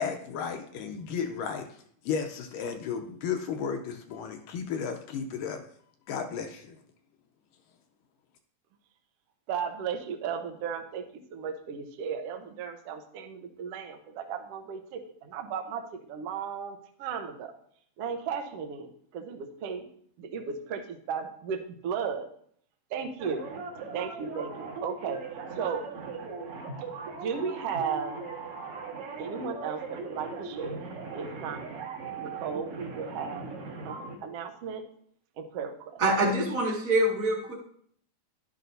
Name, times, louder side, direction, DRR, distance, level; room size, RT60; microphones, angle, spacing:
voice 1, 0.0-1.7 2.0-5.6 6.1-6.8, left 6 dB, 75° left, 6 dB, 2.2 m, -33 dB
voice 2, 9.5-11.0 11.3-17.5 18.0-19.8 20.2-22.3 22.9-23.4 23.9-25.2 25.6-25.8 27.1-28.1 29.2-30.8 31.1-31.6 32.1-33.4 33.8-34.8 35.4-36.0, right 6 dB, 80° right, 5 dB, 1.3 m, -35 dB
sound 1, 23.2-34.2, right 4 dB, 50° right, 2.1 m, -39 dB
voice 3, 36.0-37.5, right 1 dB, 30° right, -3 dB, 1.6 m, -25 dB
11.5 x 10.5 x 2.7 m, 0.63 s
omnidirectional pair, 4.3 m